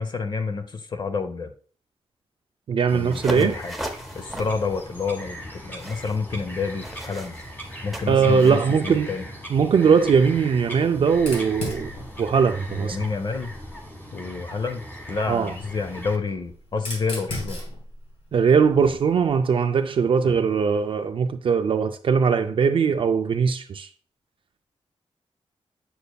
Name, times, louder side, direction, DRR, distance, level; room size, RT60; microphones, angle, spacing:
voice 1, 0.0-1.5 2.9-3.8 4.1-7.4 7.8-8.6 8.8-9.3 12.7-13.5 14.1-14.8 15.1-17.6 18.8-19.0 20.2-20.4, left 4 dB, 45° left, 0.6 m, -29 dB
voice 2, 2.7-3.5 8.1-9.1 9.5-11.9 12.2-13.0 15.3-15.5 18.3-23.9, right 6 dB, 55° right, 0.4 m, -20 dB
Bird vocalization bird call bird song, 2.9-16.2, equal, 15° left, 1.3 m, -39 dB
sound 1, 3.1-8.6, equal, ahead, 0.7 m, -37 dB
Fire, 11.1-13.9 15.0-19.3, left 1 dB, 80° left, 2.8 m, -38 dB
7.7 x 6.8 x 2.2 m
wide cardioid pair, 165°, 11 cm